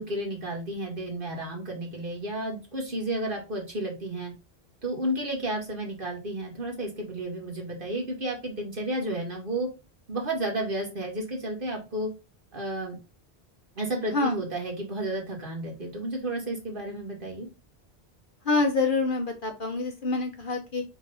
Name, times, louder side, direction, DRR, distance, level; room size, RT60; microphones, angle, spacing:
voice 1, 0.0-4.3 4.8-9.7 10.1-12.1 12.5-13.0 13.8-17.5, right 1 dB, 55° right, 0 dB, 2.3 m, -32 dB
voice 2, 18.4-20.8, left 3 dB, 55° left, 4 dB, 1.1 m, -26 dB
5.0 x 3.7 x 5.6 m, 0.29 s
omnidirectional pair, 1.1 m